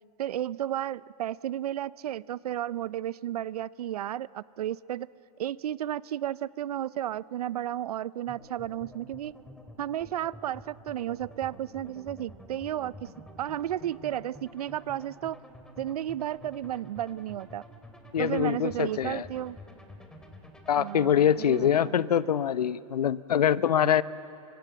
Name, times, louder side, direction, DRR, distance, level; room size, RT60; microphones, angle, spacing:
voice 1, 0.2-5.1 5.4-9.3 9.8-13.1 13.4-15.4 15.8-17.6 18.2-19.6 20.8-22.0 23.8-24.0, right 12 dB, 75° right, 20 dB, 0.6 m, -33 dB
sound 1, 8.3-21.8, left 1 dB, 5° left, 2.8 m, -49 dB
voice 2, 18.1-19.3 20.7-24.0, left 9 dB, 85° left, 16 dB, 0.8 m, -24 dB
28.0 x 25.0 x 7.9 m, 2.7 s
hypercardioid pair, 130°, 20 cm